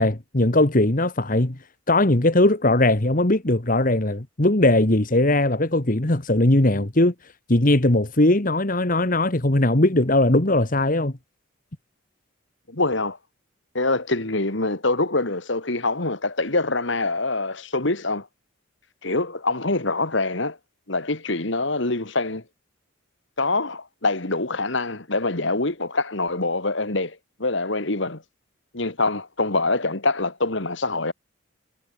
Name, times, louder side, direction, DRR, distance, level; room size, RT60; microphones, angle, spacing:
voice 1, 0.0-1.6 1.9-7.1 7.5-11.1, left 1 dB, 40° left, 1.7 m, -19 dB
voice 2, 12.7-13.2 13.7-18.3 19.0-20.6 20.9-22.4 23.4-28.2 28.7-31.1, left 2 dB, 60° left, 2.3 m, -25 dB
head